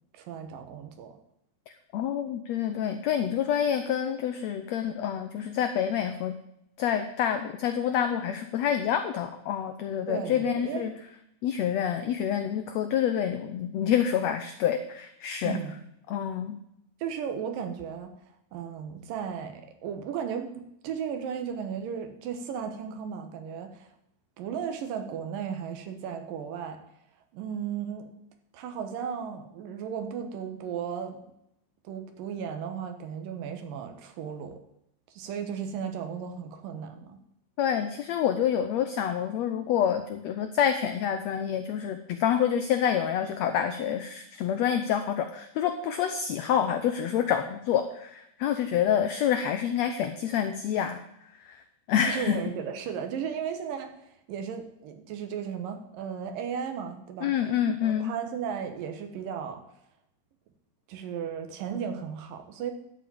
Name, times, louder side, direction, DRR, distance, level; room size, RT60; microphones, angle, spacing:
voice 1, 0.1-1.2 10.1-10.8 15.4-15.8 17.0-18.1 18.5-23.9 24.4-26.8 27.3-28.1 28.5-31.2 31.8-34.6 35.1-37.2 52.0-57.3 57.8-59.6 60.9-62.7, right 7 dB, 85° right, 7 dB, 2.8 m, -35 dB
voice 2, 1.9-6.3 6.8-10.9 11.4-15.6 16.1-16.6 37.6-51.0 51.4-51.6 51.9-52.4 57.2-58.1, left 9 dB, 85° left, 8 dB, 1.5 m, -27 dB
11.5 x 5.0 x 8.5 m, 0.78 s
omnidirectional pair, 3.8 m